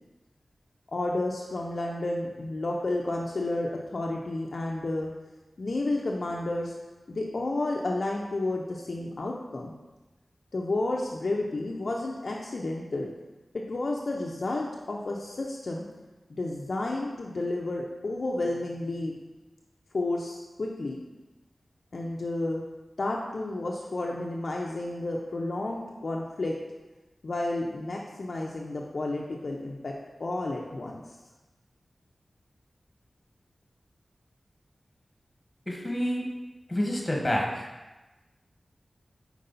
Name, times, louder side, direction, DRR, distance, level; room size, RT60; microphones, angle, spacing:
voice 1, 0.9-5.1 5.6-6.7 7.1-9.7 10.5-13.1 13.5-15.8 16.3-19.1 19.9-21.0 21.9-22.6 23.0-26.5 27.2-29.9 30.2-31.0, left 2 dB, 65° left, -1 dB, 0.6 m, -31 dB
voice 2, 35.7-36.3 36.7-37.7, equal, 25° left, -1 dB, 1.3 m, -28 dB
5.5 x 4.6 x 3.9 m, 1.1 s
wide cardioid pair, 70°, 0 cm